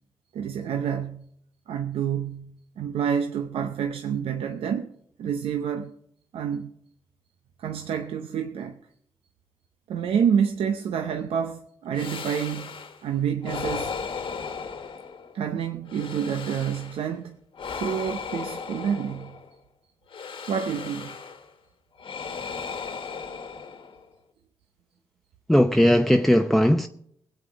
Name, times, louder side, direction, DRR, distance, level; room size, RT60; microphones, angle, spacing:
voice 1, 0.3-1.3 1.7-4.9 5.2-5.9 6.3-6.7 7.6-8.8 9.9-13.9 15.3-17.4 17.8-19.4 20.5-21.2, right 8 dB, 80° right, 0.7 m, -28 dB
sound 1, 11.9-13.0 13.4-15.4 15.9-17.1 17.5-19.5 20.1-21.5 22.0-24.1, left 5 dB, 65° left, 1.5 m, -36 dB
voice 2, 25.5-26.9, equal, 5° left, 0.8 m, -18 dB
19.0 x 8.2 x 5.1 m
supercardioid pair, 45°, 10 cm